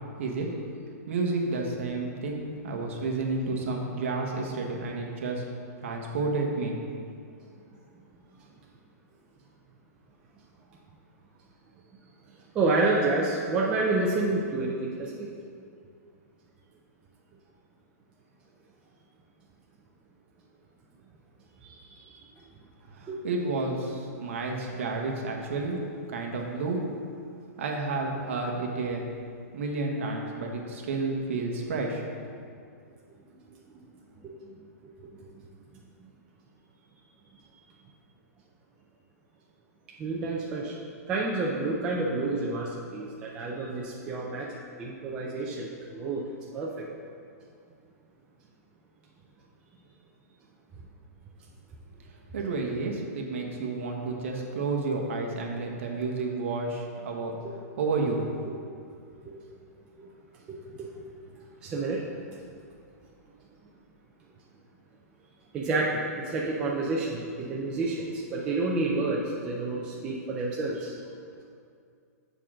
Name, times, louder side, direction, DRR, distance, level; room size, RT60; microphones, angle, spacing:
voice 1, 0.2-0.5 1.1-5.4 5.8-6.8 22.9-25.8 26.1-26.8 27.6-29.0 29.5-32.0 52.3-57.4 57.8-58.2, right 3 dB, 50° right, 1 dB, 1.0 m, -30 dB
voice 2, 12.6-15.3 21.6-22.1 23.1-23.2 34.2-34.3 40.0-40.7 41.1-44.5 44.8-46.2 46.5-46.9 59.3-59.4 60.5-60.9 61.6-62.0 65.5-70.9, right 2 dB, 10° right, -3 dB, 0.3 m, -29 dB
6.8 x 3.7 x 6.1 m, 2.3 s
hypercardioid pair, 175°, 9 cm